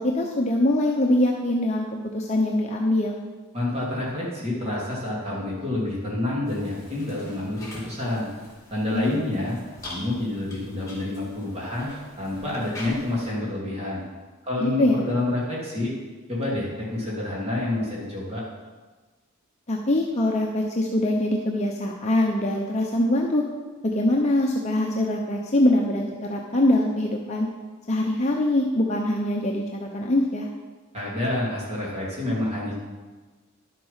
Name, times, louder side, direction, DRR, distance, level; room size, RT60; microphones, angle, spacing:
voice 1, 0.0-1.8 2.1-3.2 8.9-9.2 14.6-15.0 19.7-23.4 23.8-27.5 27.9-30.5, left 1 dB, 30° left, 0 dB, 0.8 m, -23 dB
voice 2, 3.5-8.3 8.7-9.6 9.8-14.0 14.5-15.9 16.3-18.4 30.9-32.7, left 1 dB, 30° right, -6 dB, 3.0 m, -28 dB
sound 1, 6.5-13.3, left 1 dB, 15° left, 3.0 m, -44 dB
11.0 x 7.6 x 5.6 m, 1.3 s
head